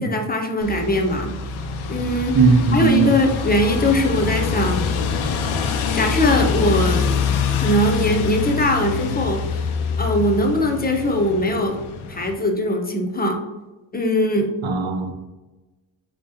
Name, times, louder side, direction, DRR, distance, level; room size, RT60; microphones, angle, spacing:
voice 1, 0.0-1.4 1.9-2.4 2.7-4.9 5.9-7.1 7.5-9.7 10.0-11.8 12.1-13.4 13.9-14.5, left 1 dB, 20° left, 2 dB, 0.7 m, -21 dB
sound 1, 0.6-12.3, left 5 dB, 80° left, 0.6 m, -25 dB
voice 2, 2.3-3.1 14.6-15.1, right 4 dB, 65° right, 5 dB, 0.8 m, -17 dB
3.6 x 3.2 x 2.7 m, 1.1 s
supercardioid pair, 50°, 48 cm